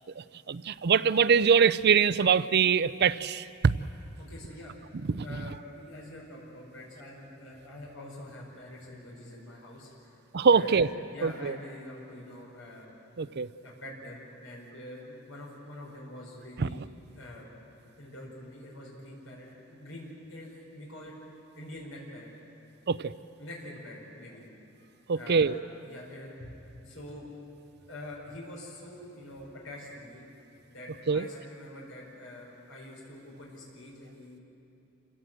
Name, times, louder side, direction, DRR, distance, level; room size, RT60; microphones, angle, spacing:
voice 1, 0.2-3.5 4.9-5.5 10.3-10.9 11.2-11.6 13.2-13.5 16.6-16.7 22.9-23.1 25.1-25.6 31.1-31.3, right 6 dB, 55° right, 16 dB, 0.5 m, -24 dB
voice 2, 4.2-4.8 5.2-10.2 10.5-10.8 11.1-12.9 13.6-16.8 17.1-17.6 18.0-21.1 21.6-22.3 23.4-24.4 25.1-25.6 25.8-27.3 27.9-30.2 30.7-34.4, left 1 dB, 85° left, -3 dB, 4.9 m, -45 dB
28.0 x 17.0 x 7.6 m, 2.8 s
head